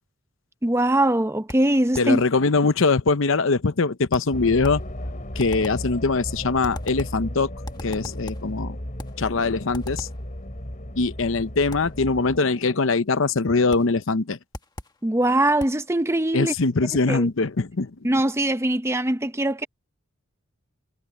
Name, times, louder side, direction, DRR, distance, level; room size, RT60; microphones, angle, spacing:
voice 1, 0.6-2.2 15.0-16.5 17.1-17.3 18.0-19.7, right 1 dB, 15° right, 0.8 m, -22 dB
sound 1, 1.5-2.2 4.1-4.9 5.4-5.9 6.6-7.3 7.7-8.5 9.0-9.3 9.7-10.3 11.7-12.0 13.7-14.0 14.5-15.0 15.6-15.9, left 1 dB, 20° left, 1.6 m, -39 dB
voice 2, 2.0-4.8 5.3-7.5 7.8-8.8 9.2-10.1 11.0-14.4 16.3-18.0, left 3 dB, 65° left, 0.8 m, -22 dB
sound 2, 4.3-12.4, left 1 dB, 40° left, 3.3 m, -35 dB
head